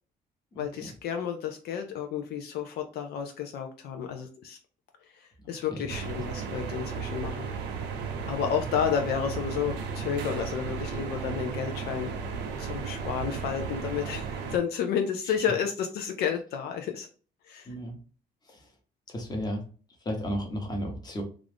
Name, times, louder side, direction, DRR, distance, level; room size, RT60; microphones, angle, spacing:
voice 1, 0.6-4.6 5.1-7.5 8.3-17.1 17.5-17.7, left 8 dB, 70° left, 5 dB, 0.5 m, -31 dB
voice 2, 5.4-5.8 17.7-18.0 18.5-18.6 19.1-19.6 20.0-21.2, equal, 25° left, 2 dB, 1.0 m, -33 dB
sound 1, 5.9-14.6, right 6 dB, 85° right, 0.6 m, -34 dB
2.5 x 2.3 x 3.3 m, 0.39 s
cardioid pair, 110°, 17 cm